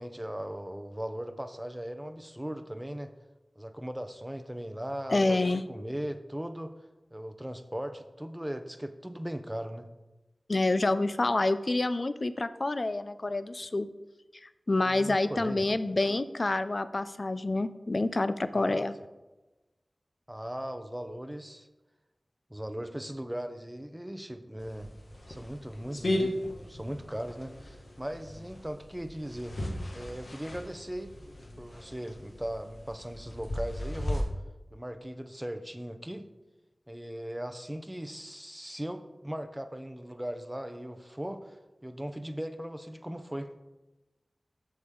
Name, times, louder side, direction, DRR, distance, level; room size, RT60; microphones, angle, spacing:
voice 1, 0.0-3.1 3.6-6.7 7.1-9.9 14.8-15.6 18.5-18.9 20.3-21.7 22.5-24.9 25.3-29.6 29.9-31.1 31.6-34.3 34.7-36.3 36.9-43.5, equal, 10° right, 8 dB, 0.7 m, -38 dB
voice 2, 5.1-5.6 10.5-13.9 14.4-18.9, left 2 dB, 50° left, 13 dB, 0.4 m, -28 dB
sound 1, 24.6-34.2, left 1 dB, 70° left, 1.5 m, -37 dB
8.0 x 6.8 x 3.7 m, 1.1 s
wide cardioid pair, 55°, 0 cm